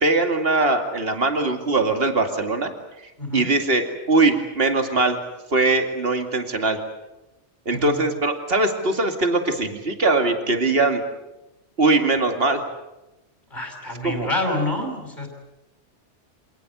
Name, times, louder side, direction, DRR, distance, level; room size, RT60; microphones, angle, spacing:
voice 1, 0.0-2.7 3.3-5.2 5.5-6.8 7.7-11.0 11.8-12.6 14.0-14.3, right 2 dB, 55° right, 5 dB, 2.7 m, -21 dB
voice 2, 3.2-3.5 7.7-8.0 13.5-15.3, left 1 dB, 40° left, 1 dB, 5.6 m, -27 dB
27.0 x 19.0 x 8.2 m, 0.99 s
omnidirectional pair, 1.2 m